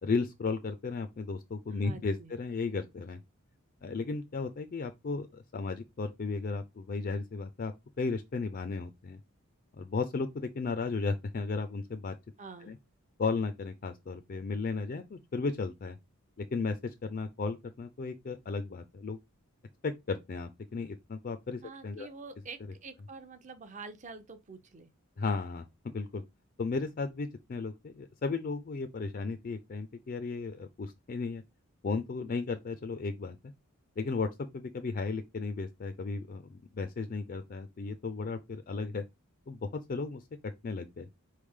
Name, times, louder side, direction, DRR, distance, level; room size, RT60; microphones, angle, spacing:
voice 1, 0.0-3.2 3.8-9.2 9.7-12.1 12.6-12.8 13.2-16.0 16.4-19.2 19.8-22.1 25.2-26.2 26.6-31.4 31.8-33.4 34.0-34.3 34.5-39.0 39.5-40.2 40.6-41.1, left 4 dB, 40° left, 0.4 m, -35 dB
voice 2, 1.7-2.3 12.4-12.7 21.6-24.9, right 4 dB, 35° right, 0.6 m, -47 dB
4.5 x 3.2 x 3.6 m
head